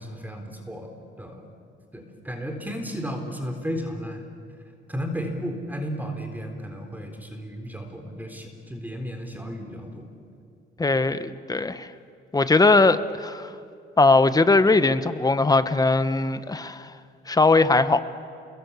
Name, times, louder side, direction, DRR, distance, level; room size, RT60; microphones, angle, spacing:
voice 1, 0.0-1.4 1.9-4.2 4.9-10.1, equal, 10° right, 4 dB, 3.9 m, -34 dB
voice 2, 10.8-11.9 12.3-13.5 14.0-16.9 17.3-18.0, left 3 dB, 20° left, 12 dB, 1.2 m, -20 dB
28.5 x 22.0 x 8.3 m, 2.5 s
cardioid pair, 90°, 20 cm